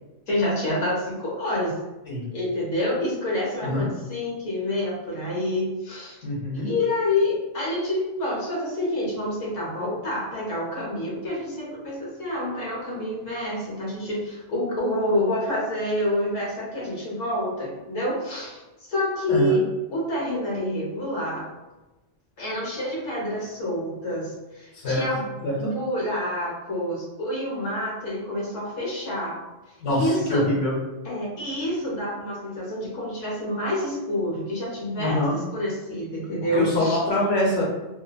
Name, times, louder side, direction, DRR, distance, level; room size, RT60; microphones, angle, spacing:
voice 1, 0.3-1.7 2.3-6.2 6.6-18.6 18.9-19.6 19.9-21.5 22.4-25.2 25.6-29.4 29.9-30.4 31.0-37.0, left 1 dB, 85° left, -5 dB, 1.2 m, -27 dB
voice 2, 6.2-6.7 19.3-19.6 24.7-25.1 25.4-25.7 29.8-30.7 35.0-35.4 36.5-37.6, left 1 dB, 60° left, -4 dB, 1.0 m, -24 dB
2.6 x 2.2 x 2.2 m, 1.1 s
omnidirectional pair, 1.3 m